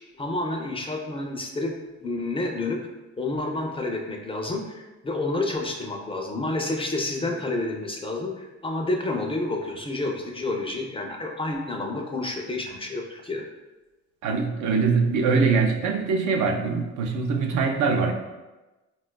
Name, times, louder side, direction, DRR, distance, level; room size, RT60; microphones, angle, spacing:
voice 1, 0.2-2.8 3.2-13.5, left 2 dB, 20° left, 2 dB, 0.4 m, -29 dB
voice 2, 14.2-18.1, right 4 dB, 75° right, 4 dB, 0.5 m, -23 dB
4.2 x 2.2 x 2.2 m, 1.1 s
cardioid pair, 90°, 30 cm